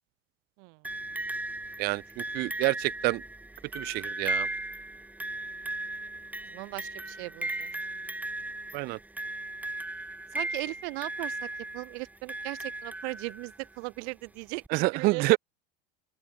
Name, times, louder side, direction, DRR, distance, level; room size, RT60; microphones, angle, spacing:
sound 1, 0.8-13.7 14.6-14.7, right 2 dB, 5° right, 1.3 m, -37 dB
voice 1, 1.8-3.2 3.7-4.5 8.7-9.0 14.7-15.4, right 21 dB, 25° right, 0.4 m, -27 dB
voice 2, 6.4-7.7 10.3-15.4, right 33 dB, 60° right, 2.5 m, -38 dB
open air
supercardioid pair, 155°, 37 cm